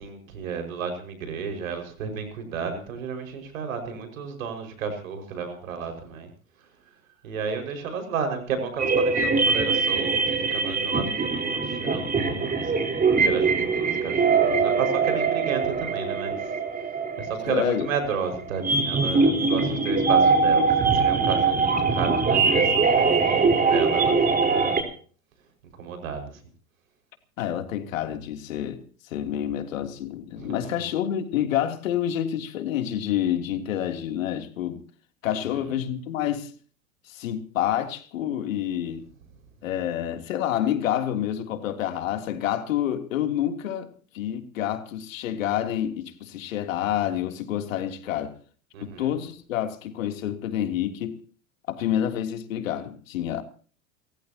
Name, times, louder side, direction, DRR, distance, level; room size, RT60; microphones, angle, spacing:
voice 1, 0.0-6.3 7.2-16.5 16.8-16.9 17.2-24.9 25.8-26.4 30.4-30.9 35.3-35.4 48.7-49.1, right 6 dB, 75° right, 5.6 m, -33 dB
sound 1, 8.8-24.8, right 4 dB, 20° right, 4.3 m, -22 dB
voice 2, 17.5-17.9 27.4-34.8 35.2-36.5 37.1-39.0 39.6-43.9 44.1-48.3 48.8-51.2 51.7-53.4, left 11 dB, 70° left, 3.2 m, -28 dB
29.5 x 14.5 x 2.9 m
hypercardioid pair, 95°, 41 cm